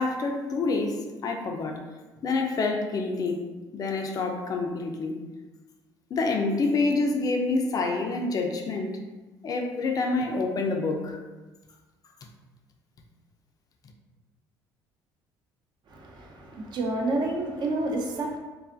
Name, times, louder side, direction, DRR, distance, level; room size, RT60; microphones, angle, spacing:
voice 1, 0.0-1.8 2.2-3.4 3.7-5.2 6.1-9.0 9.4-11.2, left 3 dB, 40° left, 3 dB, 0.4 m, -27 dB
voice 2, 15.9-18.4, right 2 dB, 55° right, 1 dB, 0.5 m, -29 dB
2.4 x 2.4 x 2.4 m, 1.2 s
cardioid pair, 95°, 9 cm